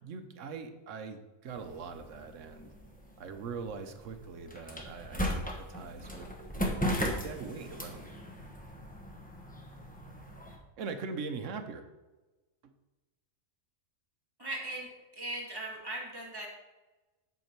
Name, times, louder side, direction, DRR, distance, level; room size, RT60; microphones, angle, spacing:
voice 1, 0.0-2.7 3.2-8.2 10.8-11.9 12.6-12.7, right 5 dB, 70° right, 7 dB, 1.1 m, -42 dB
sound 1, 1.5-10.6, equal, 5° left, 1.0 m, -38 dB
voice 2, 14.4-14.9 15.1-16.5, right 2 dB, 15° right, -3 dB, 1.9 m, -38 dB
8.2 x 5.9 x 4.6 m, 1.1 s
omnidirectional pair, 1.4 m